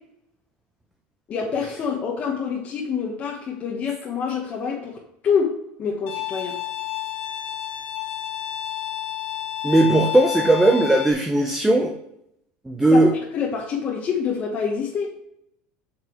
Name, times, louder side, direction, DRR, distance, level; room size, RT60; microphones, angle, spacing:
voice 1, 1.3-6.6 12.9-15.2, left 6 dB, 30° left, -2 dB, 1.2 m, -26 dB
Bowed string instrument, 6.1-11.1, left 11 dB, 80° left, 1.2 m, -30 dB
voice 2, 9.6-11.9 12.7-13.1, right 1 dB, 5° right, 2 dB, 0.6 m, -17 dB
7.8 x 5.9 x 3.1 m, 0.79 s
supercardioid pair, 140°, 5 cm